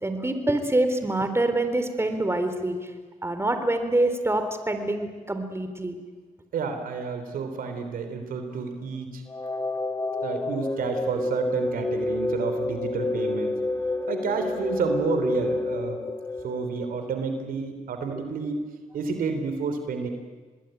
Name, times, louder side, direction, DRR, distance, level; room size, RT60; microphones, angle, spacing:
voice 1, 0.0-2.9 3.2-6.0, right 2 dB, 15° right, 8 dB, 3.7 m, -25 dB
voice 2, 6.5-9.2 10.2-13.6 14.1-16.0 16.4-18.6 18.9-20.1, right 5 dB, 80° right, 7 dB, 3.5 m, -30 dB
sound 1, 9.3-17.2, left 2 dB, 25° left, 2.5 m, -29 dB
27.0 x 20.5 x 9.1 m, 1.4 s
supercardioid pair, 55°, 15 cm